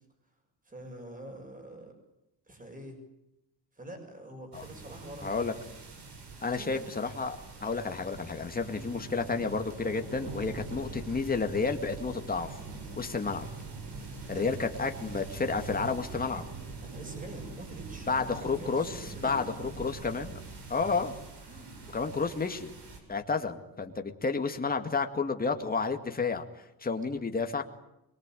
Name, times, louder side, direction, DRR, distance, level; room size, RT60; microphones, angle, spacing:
voice 1, 0.6-1.9 2.5-3.0 3.8-5.5 6.5-6.8 8.7-9.1 14.3-14.5 14.9-15.0 16.8-19.6 21.5-21.7, right 1 dB, 20° right, 5 dB, 6.9 m, -45 dB
sound 1, 4.5-23.0, right 4 dB, 75° right, 7.2 m, -43 dB
voice 2, 5.2-5.5 6.4-12.5 13.0-13.5 14.3-16.4 18.1-20.4 20.7-21.1 21.9-22.7 23.1-26.4 26.8-27.7, left 4 dB, 20° left, 5 dB, 2.2 m, -31 dB
23.5 x 23.0 x 9.3 m, 0.87 s
wide cardioid pair, 155°, 39 cm